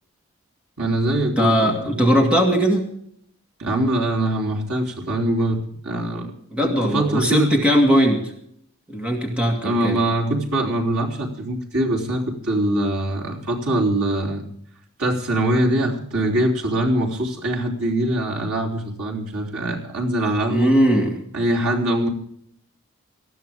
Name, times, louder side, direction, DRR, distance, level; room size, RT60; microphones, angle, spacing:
voice 1, 0.8-2.0 3.6-6.3 6.6-7.5 9.6-14.4 15.0-20.7 21.3-22.1, right 1 dB, 85° right, -1 dB, 3.4 m, -23 dB
voice 2, 1.4-2.8 6.5-8.2 8.9-10.0 20.5-21.2, equal, 5° right, 2 dB, 1.9 m, -19 dB
19.0 x 14.0 x 3.6 m, 0.68 s
head